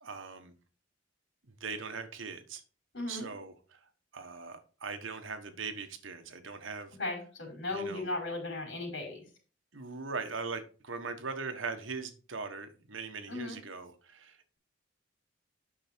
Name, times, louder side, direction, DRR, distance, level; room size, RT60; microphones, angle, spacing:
voice 1, 0.0-0.5 1.5-2.6 3.1-3.8 4.1-6.9 7.7-8.1 9.7-14.4, right 4 dB, 85° right, 8 dB, 1.3 m, -40 dB
voice 2, 2.9-3.3 7.0-9.2 13.3-13.6, left 2 dB, 65° left, 0 dB, 4.9 m, -36 dB
8.8 x 6.1 x 4.5 m, 0.38 s
head